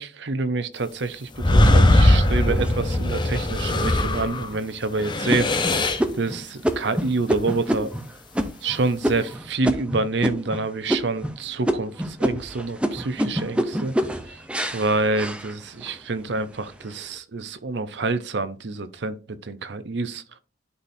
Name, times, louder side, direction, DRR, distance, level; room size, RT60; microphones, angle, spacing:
voice 1, 0.0-5.7 6.1-7.9 8.6-13.9 14.3-14.4 14.7-20.2, right 3 dB, 75° right, 0.7 m, -27 dB
sound 1, 1.4-4.5 4.9-6.1, left 1 dB, 25° left, 0.7 m, -19 dB
sound 2, 2.5-3.3 3.9-4.0 4.5-4.8 5.3-10.6 10.9-11.4 11.7-16.0 16.5-17.0, equal, 5° right, 0.6 m, -27 dB
11.0 x 4.2 x 2.7 m
head